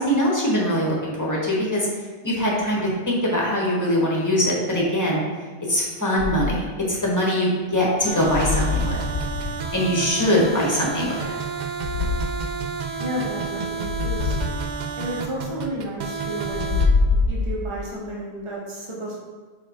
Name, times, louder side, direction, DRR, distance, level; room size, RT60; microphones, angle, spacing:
voice 1, 0.0-1.9 2.2-5.2 5.7-9.0 9.7-11.2, equal, 15° left, -4 dB, 1.3 m, -22 dB
sound 1, 6.2-6.7 8.2-9.8 11.8-12.4 13.8-14.6 16.5-17.9, left 4 dB, 70° left, 1.0 m, -24 dB
sound 2, 8.0-16.9, right 5 dB, 55° right, 0.5 m, -30 dB
voice 2, 10.2-10.8 13.0-14.4 14.9-16.8 17.3-19.2, right 1 dB, 30° right, -4 dB, 1.1 m, -32 dB
5.0 x 4.4 x 4.3 m, 1.4 s
omnidirectional pair, 1.1 m